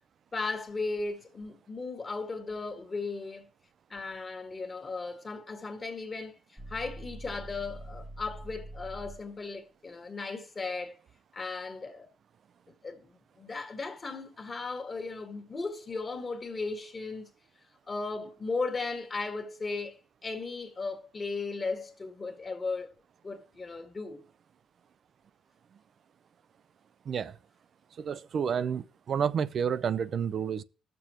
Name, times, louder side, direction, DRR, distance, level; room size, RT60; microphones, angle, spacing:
voice 1, 0.3-3.5 3.9-11.0 11.3-12.1 12.8-17.3 17.9-22.9 23.2-24.2, left 3 dB, 35° left, 1.5 m, -36 dB
sound 1, 6.6-9.4, right 1 dB, 5° right, 0.8 m, -44 dB
voice 2, 27.1-27.4 28.0-30.6, right 7 dB, 55° right, 0.5 m, -30 dB
19.0 x 6.9 x 2.9 m
cardioid pair, 90°, 0 cm